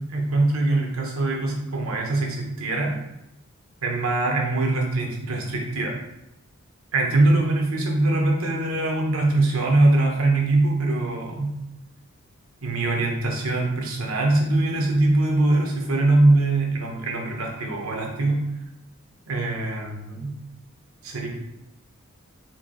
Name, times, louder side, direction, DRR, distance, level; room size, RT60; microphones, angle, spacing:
voice 1, 0.1-3.0 3.8-6.0 6.9-11.5 12.6-18.4 19.3-20.3 21.0-21.3, right 2 dB, 70° right, 0 dB, 1.0 m, -22 dB
4.5 x 2.7 x 3.8 m, 0.87 s
head